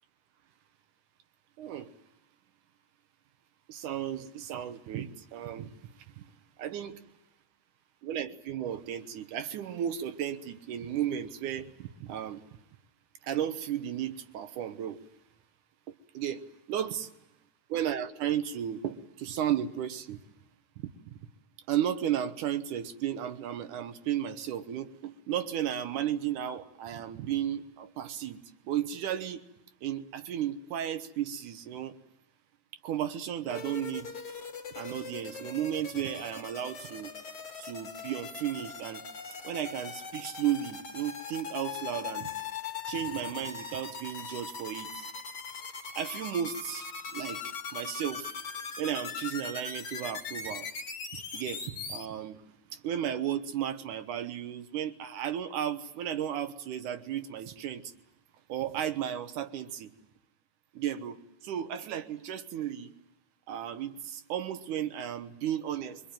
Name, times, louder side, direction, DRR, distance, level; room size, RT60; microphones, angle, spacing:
voice 1, 1.6-1.9 3.7-5.7 6.2-6.3 6.6-7.0 8.0-12.4 13.2-15.0 15.9-17.1 17.7-20.2 20.8-20.9 21.7-29.4 29.8-31.9 32.8-34.1 34.8-37.1 37.6-39.0 39.4-42.3 42.9-44.9 46.0-47.4 47.7-48.3 48.8-50.7 51.1-52.4 52.7-57.9 58.5-59.9 60.7-62.9 63.5-66.0, right 10 dB, 70° right, 10 dB, 2.5 m, -34 dB
sound 1, 33.5-52.0, left 5 dB, 40° left, 2.5 m, -40 dB
24.5 x 24.0 x 9.0 m, 0.84 s
omnidirectional pair, 3.9 m